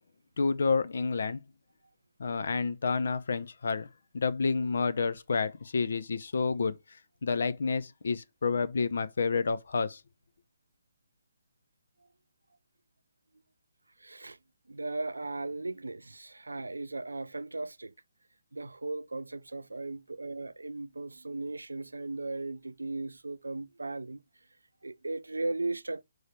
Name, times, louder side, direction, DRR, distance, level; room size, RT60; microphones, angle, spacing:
voice 1, 0.4-1.4 2.2-3.9 4.1-6.8 7.2-10.0, left 4 dB, 60° left, 0.7 m, -29 dB
voice 2, 14.0-14.4 14.7-17.9 18.5-24.2 24.8-26.0, right 2 dB, 80° right, 0.5 m, -37 dB
4.8 x 4.7 x 4.4 m
figure-of-eight pair, 135°, 0 cm